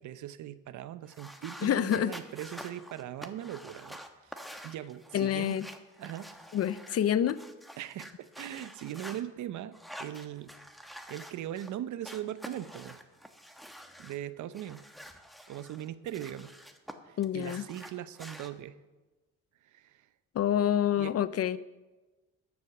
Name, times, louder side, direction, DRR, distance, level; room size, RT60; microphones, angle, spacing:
voice 1, 0.0-5.6 6.0-6.3 7.8-10.5 11.1-13.0 14.0-14.8 15.5-16.5 17.0-18.8 19.6-20.1 21.0-21.2, right 11 dB, 75° right, 15 dB, 0.7 m, -40 dB
sound 1, 1.1-9.2 9.7-11.7 12.0-14.2 14.5-16.9 17.2-18.5, equal, ahead, 1.1 m, -48 dB
voice 2, 1.6-2.1 5.1-5.7 6.5-7.4 17.2-17.6 20.3-21.6, left 10 dB, 55° left, 16 dB, 0.6 m, -27 dB
13.5 x 7.8 x 5.9 m, 1.2 s
cardioid pair, 90°, 30 cm